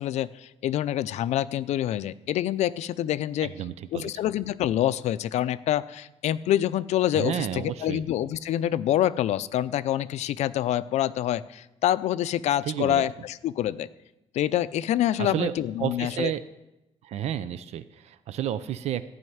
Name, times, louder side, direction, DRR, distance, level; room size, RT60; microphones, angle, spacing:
voice 1, 0.0-3.5 3.9-13.9 14.3-16.3, left 12 dB, 80° left, 16 dB, 0.5 m, -26 dB
voice 2, 3.4-4.1 7.2-8.0 12.6-13.0 15.2-15.5 15.8-16.4 17.0-19.0, right 10 dB, 70° right, 14 dB, 0.5 m, -31 dB
14.5 x 5.6 x 9.3 m, 0.95 s
cardioid pair, 180°, 11 cm